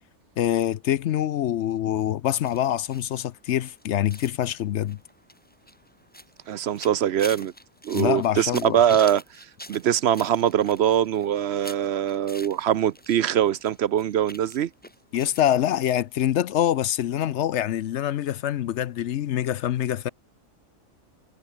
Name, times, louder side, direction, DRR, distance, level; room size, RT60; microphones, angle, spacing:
voice 1, 0.4-5.0 7.9-8.8 15.1-20.1, left 11 dB, 65° left, 0.8 m, -25 dB
sound 1, 2.4-13.2 13.5-15.6 15.9-16.0 16.3-16.4, equal, 5° left, 5.7 m, -45 dB
voice 2, 6.5-7.5 7.8-9.2 9.7-14.7, right 10 dB, 60° right, 0.8 m, -22 dB
omnidirectional pair, 1.4 m